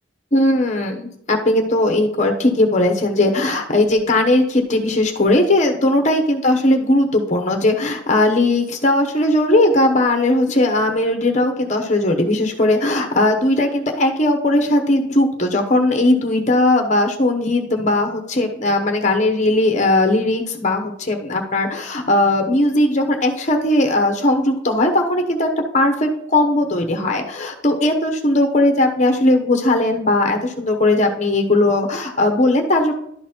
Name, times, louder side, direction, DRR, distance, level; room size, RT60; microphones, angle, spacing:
voice 1, 0.3-25.5 25.7-32.9, left 1 dB, 35° left, 4 dB, 1.0 m, -18 dB
11.5 x 4.1 x 4.4 m, 0.72 s
head